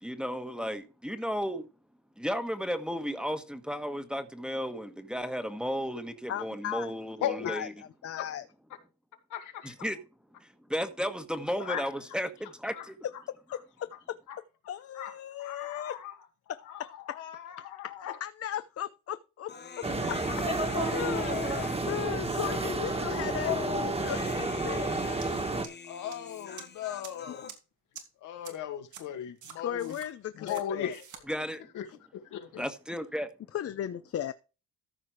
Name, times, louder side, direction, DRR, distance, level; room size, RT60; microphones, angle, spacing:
voice 1, 0.0-1.7 2.2-7.7 9.6-10.0 10.4-12.9 31.3-31.7 32.6-33.3, equal, 5° right, 1.3 m, -34 dB
voice 2, 6.3-6.9 7.4-7.7 8.0-8.4 13.5-14.2 14.7-16.0 16.5-17.2 17.8-19.9 20.6-24.9 29.6-30.9 33.5-34.3, left 10 dB, 50° left, 0.7 m, -37 dB
voice 3, 7.2-7.5 9.3-9.7 11.6-11.9 12.7-12.9 14.3-14.4 14.9-15.1 15.4-16.1 16.7-18.2 20.3-21.7 23.3-24.8 25.0-25.2 25.9-27.5 28.2-29.9 30.4-31.0 31.7-31.9 32.1-32.7, left 10 dB, 85° left, 2.2 m, -37 dB
Human voice, 19.5-27.5, left 5 dB, 35° left, 1.1 m, -45 dB
sound 1, 19.8-25.6, right 3 dB, 20° right, 1.7 m, -31 dB
sound 2, 25.2-25.3 25.6-26.1 26.6-26.7 27.0-27.1 27.5-27.6 27.9-28.0 28.4-28.5 28.9-29.0 29.4-30.1 30.5-30.6 30.9-31.2, right 8 dB, 75° right, 2.6 m, -45 dB
14.0 x 5.0 x 4.9 m
cardioid pair, 90°, 30 cm